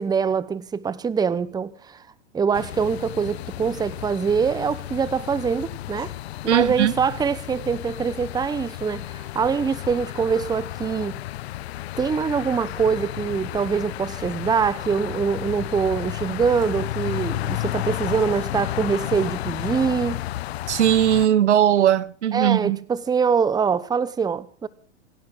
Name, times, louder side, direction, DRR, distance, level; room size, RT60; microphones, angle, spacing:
voice 1, 0.0-2.0 2.3-6.1 6.4-11.2 12.0-20.2 22.3-24.7, right 6 dB, 10° right, 1.0 m, -24 dB
sound 1, 2.5-21.3, left 15 dB, 60° left, 0.7 m, -32 dB
voice 2, 6.5-6.9 20.7-22.8, right 11 dB, 75° right, 1.3 m, -19 dB
27.5 x 12.0 x 3.8 m
hypercardioid pair, 110°, 35 cm